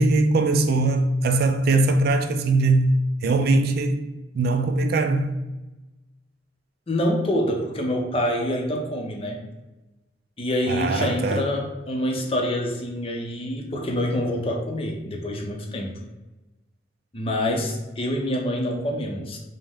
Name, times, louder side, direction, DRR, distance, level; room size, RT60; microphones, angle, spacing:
voice 1, 0.0-3.0 3.2-4.0 4.3-5.4 10.7-11.5, right 2 dB, 55° right, 0.3 m, -21 dB
voice 2, 6.9-9.4 10.4-15.9 17.1-19.4, left 1 dB, 30° left, 0.6 m, -26 dB
5.1 x 2.1 x 3.5 m
head